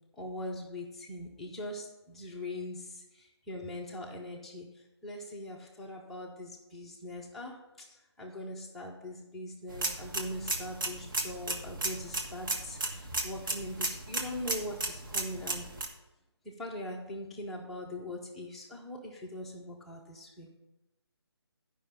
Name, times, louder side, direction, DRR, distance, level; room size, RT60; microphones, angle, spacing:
voice 1, 0.1-4.7 5.0-15.7 16.4-20.6, left 1 dB, ahead, -4 dB, 0.5 m, -41 dB
sound 1, 9.7-15.9, right 2 dB, 50° right, 1.4 m, -35 dB
10.0 x 5.4 x 5.5 m, 0.99 s
figure-of-eight pair, 160°, 14 cm